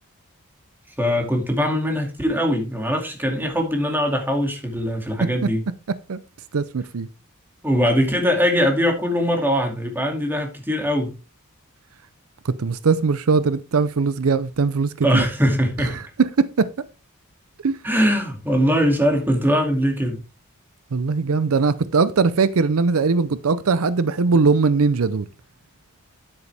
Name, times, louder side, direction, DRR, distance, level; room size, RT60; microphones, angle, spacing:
voice 1, 1.0-5.6 7.6-11.2 15.0-16.0 17.8-20.2, equal, 10° right, 2.3 m, -21 dB
voice 2, 6.5-7.1 12.4-15.2 15.8-16.7 17.6-17.8 20.9-25.2, right 4 dB, 70° right, 0.6 m, -20 dB
10.0 x 8.2 x 3.4 m
head